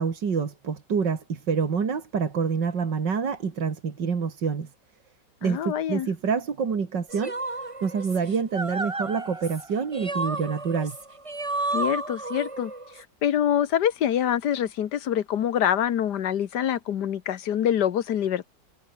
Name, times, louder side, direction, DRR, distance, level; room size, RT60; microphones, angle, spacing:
voice 1, 0.0-4.7 5.4-11.0, right 6 dB, 80° right, 3.0 m, -27 dB
voice 2, 5.4-6.1 11.7-12.7 13.2-18.5, left 10 dB, 70° left, 1.6 m, -25 dB
sound 1, 7.1-13.0, right 2 dB, 20° right, 1.9 m, -32 dB
omnidirectional pair, 1.9 m